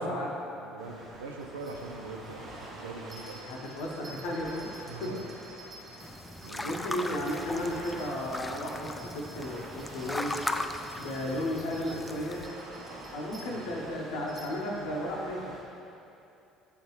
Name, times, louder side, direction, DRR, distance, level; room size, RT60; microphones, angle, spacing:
voice 1, 0.0-3.5 4.9-5.2 6.4-6.7 13.5-13.6, right 3 dB, 80° right, 3 dB, 0.4 m, -43 dB
Waves surf, 0.8-15.6, right 1 dB, 60° right, 1.2 m, -47 dB
sound 1, 1.4-13.7 14.3-14.4, right 2 dB, 40° right, 1.0 m, -53 dB
voice 2, 3.4-4.7 5.0-5.1 6.6-10.3 10.9-12.4 13.1-15.5, left 1 dB, 65° left, -2 dB, 0.7 m, -34 dB
sound 2, 6.0-12.5, left 2 dB, 15° left, 0.3 m, -38 dB
8.3 x 3.8 x 3.0 m, 2.7 s
figure-of-eight pair, 55°, 0 cm